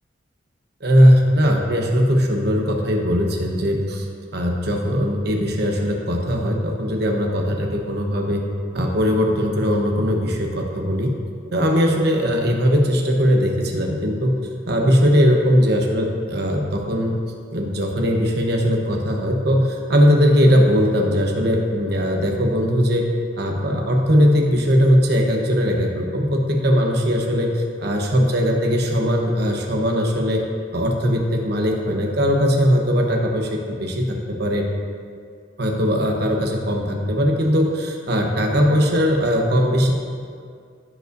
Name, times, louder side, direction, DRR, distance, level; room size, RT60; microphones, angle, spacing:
voice 1, 0.8-4.1 4.3-8.4 8.7-11.1 11.5-14.3 14.7-17.1 17.5-23.1 23.4-30.4 30.7-34.7 35.6-40.0, equal, 60° right, 1 dB, 1.1 m, -19 dB
15.0 x 5.3 x 2.6 m, 2.1 s
head